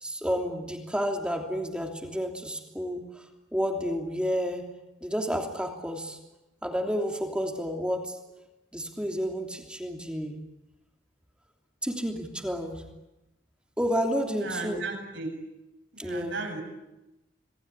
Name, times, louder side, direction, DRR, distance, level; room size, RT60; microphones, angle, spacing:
voice 1, 0.0-3.3 3.5-4.6 5.0-6.2 6.6-8.2 8.7-10.4 11.8-12.8 13.8-14.8 16.0-16.4, equal, 5° right, 2 dB, 3.1 m, -30 dB
voice 2, 14.3-15.4 15.9-16.6, right 3 dB, 65° right, 0 dB, 7.5 m, -35 dB
27.5 x 20.5 x 10.0 m, 0.97 s
head